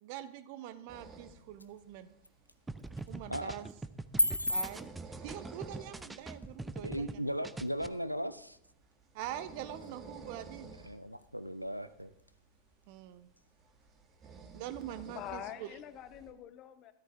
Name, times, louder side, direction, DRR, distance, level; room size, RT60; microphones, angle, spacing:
voice 1, 0.0-2.1 3.1-3.7 4.5-7.3 9.1-10.7 12.9-13.3 14.5-15.7, right 11 dB, 45° right, 13 dB, 0.9 m, -44 dB
sound 1, 0.7-14.7, left 1 dB, 85° left, 0.6 m, -42 dB
sound 2, 0.9-16.3, right 4 dB, 25° right, 1.7 m, -55 dB
sound 3, 2.7-7.2 7.4-7.9, right 2 dB, 10° right, 0.6 m, -43 dB
voice 2, 6.8-8.6 10.8-12.1, equal, 90° right, 13 dB, 0.5 m, -37 dB
voice 3, 15.0-16.9, left 10 dB, 35° left, 12 dB, 0.9 m, -45 dB
13.5 x 12.5 x 3.6 m, 0.73 s
figure-of-eight pair, 90°, 0 cm